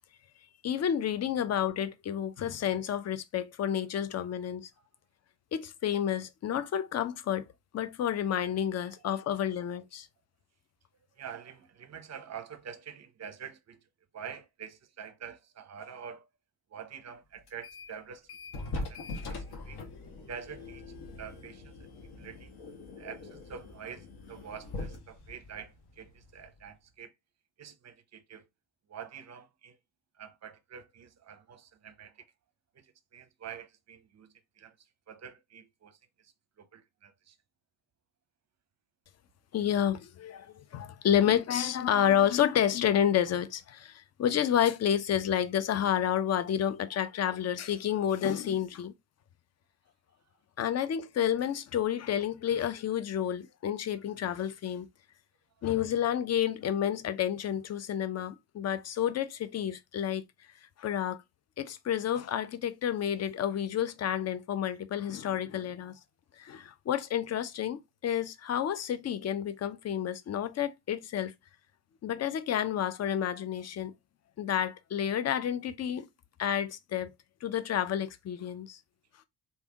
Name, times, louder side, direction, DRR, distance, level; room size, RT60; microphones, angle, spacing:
voice 1, 0.6-4.7 5.5-7.5 7.7-10.1 39.5-48.9 50.6-54.9 55.6-60.2 60.8-61.2 61.6-66.0 66.4-71.3 72.0-73.9 74.4-76.1 76.4-77.1 77.4-78.8, left 10 dB, 35° left, 0.6 m, -30 dB
voice 2, 11.2-13.8 14.1-16.3 16.7-18.3 18.7-19.0 19.3-19.8 20.3-20.8 21.2-21.7 22.0-22.5 23.0-27.1 27.6-28.5 28.9-29.8 30.2-32.1 32.7-34.7 35.1-36.0 36.6-37.3, right 7 dB, 35° right, 0.7 m, -46 dB
sound 1, 17.5-18.0 18.3-26.7, left 2 dB, 55° left, 1.2 m, -42 dB
3.4 x 2.7 x 3.4 m
hypercardioid pair, 45°, 48 cm